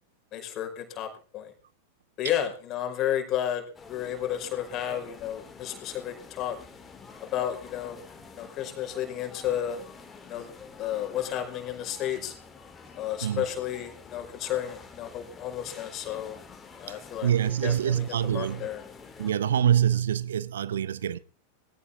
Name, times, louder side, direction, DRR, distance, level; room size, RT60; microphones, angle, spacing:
voice 1, 0.3-1.5 2.2-6.6 7.2-8.0 8.3-9.8 10.2-10.5 10.8-12.3 13.0-16.4 16.8-18.8, left 11 dB, 35° left, 5.4 m, -32 dB
sound 1, 3.7-19.3, left 5 dB, 15° left, 3.7 m, -48 dB
voice 2, 16.9-18.7 19.2-21.2, right 9 dB, 65° right, 0.9 m, -25 dB
20.0 x 17.0 x 3.8 m
figure-of-eight pair, 90°, 0 cm